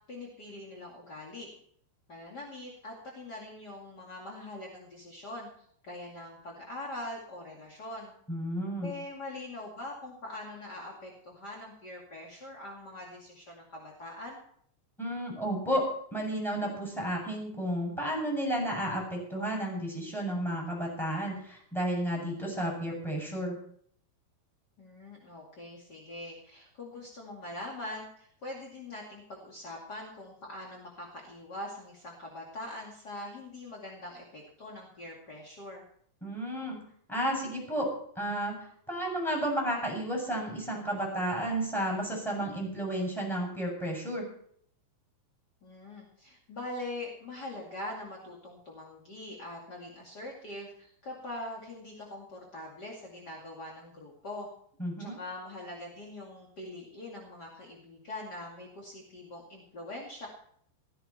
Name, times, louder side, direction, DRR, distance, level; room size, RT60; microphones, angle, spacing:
voice 1, 0.1-1.5 2.1-5.5 5.8-8.1 8.8-14.4 24.8-35.8 45.6-54.5 55.0-60.3, left 1 dB, 35° left, -2 dB, 1.8 m, -43 dB
voice 2, 8.3-8.9 15.0-23.6 36.2-36.8 37.1-37.9 38.2-44.2 54.8-55.2, right 1 dB, ahead, -2 dB, 7.1 m, -32 dB
15.5 x 15.5 x 4.4 m, 0.62 s
omnidirectional pair, 5.3 m